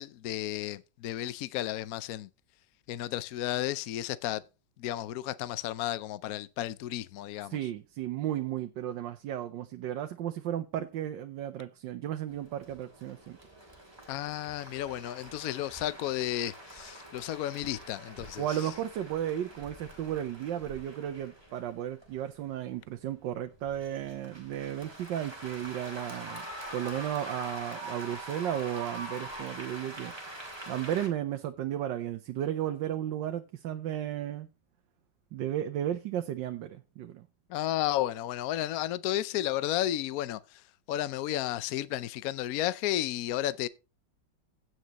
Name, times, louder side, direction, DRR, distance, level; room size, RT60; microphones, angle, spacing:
voice 1, 0.0-2.3 2.9-4.4 4.8-7.6 14.1-18.6 37.5-43.7, left 13 dB, 65° left, 1.0 m, -33 dB
voice 2, 7.5-13.4 18.4-26.4 26.7-30.1 30.7-34.5 35.3-37.3, right 11 dB, 90° right, 1.4 m, -34 dB
sound 1, 12.3-31.1, right 1 dB, 15° right, 2.7 m, -45 dB
16.0 x 6.3 x 3.0 m
omnidirectional pair, 1.9 m